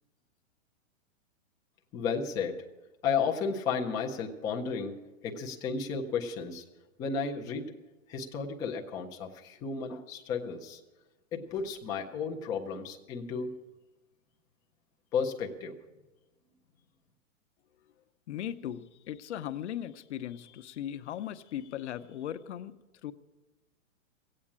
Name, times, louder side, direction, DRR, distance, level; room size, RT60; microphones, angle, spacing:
voice 1, 1.9-2.6 3.0-5.0 5.2-6.6 7.0-7.6 8.1-10.8 11.3-13.5 15.1-15.8, left 5 dB, 10° left, 1 dB, 0.5 m, -33 dB
voice 2, 18.3-22.7 23.0-23.1, left 11 dB, 55° left, 11 dB, 0.9 m, -38 dB
15.5 x 8.7 x 8.6 m, 1.1 s
hypercardioid pair, 155°, 40 cm